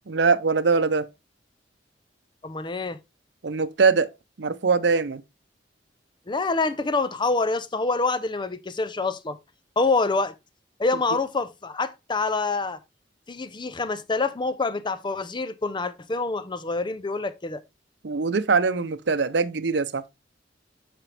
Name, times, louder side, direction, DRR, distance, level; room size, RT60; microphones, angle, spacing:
voice 1, 0.1-1.1 3.4-4.1 4.4-5.2 18.0-20.0, right 4 dB, 70° right, 0.7 m, -22 dB
voice 2, 2.4-3.0 6.3-9.4 9.8-10.3 10.8-12.8 13.3-17.6, left 3 dB, 25° left, 0.6 m, -26 dB
8.7 x 5.2 x 3.3 m
head